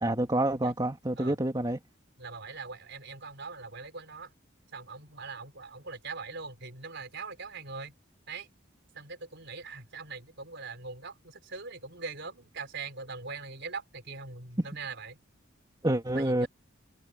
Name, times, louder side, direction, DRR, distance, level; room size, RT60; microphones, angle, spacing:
voice 1, 0.0-1.8 15.8-16.5, right 1 dB, 20° right, 2.4 m, -27 dB
voice 2, 2.2-4.3 4.7-7.9 8.3-8.5 8.9-15.2 16.2-16.5, right 4 dB, 60° right, 4.5 m, -41 dB
head